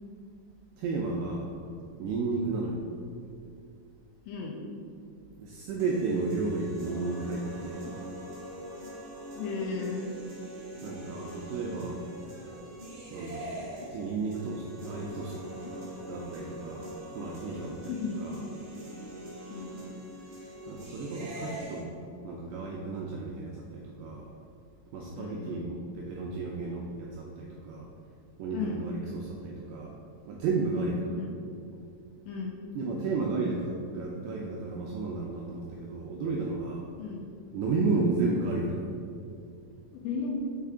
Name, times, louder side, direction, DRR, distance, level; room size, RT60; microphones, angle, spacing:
voice 1, 0.8-1.5 2.0-2.8 5.4-7.9 10.8-12.0 13.1-13.6 13.9-15.4 16.1-18.4 20.7-21.9 22.2-24.3 24.9-27.9 28.4-29.9 30.3-31.2 32.8-36.9 37.5-38.9, right 3 dB, 90° right, -1 dB, 2.5 m, -33 dB
voice 2, 4.3-4.6 9.4-10.1 17.4-18.2 19.5-19.8 25.1-25.6 28.5-28.8 30.8-31.3 32.3-32.6 37.0-37.2 39.9-40.3, left 5 dB, 85° left, -1 dB, 2.7 m, -35 dB
sound 1, 5.8-21.8, right 1 dB, 60° right, 2.0 m, -42 dB
6.6 x 4.9 x 3.5 m, 2.4 s
omnidirectional pair, 5.5 m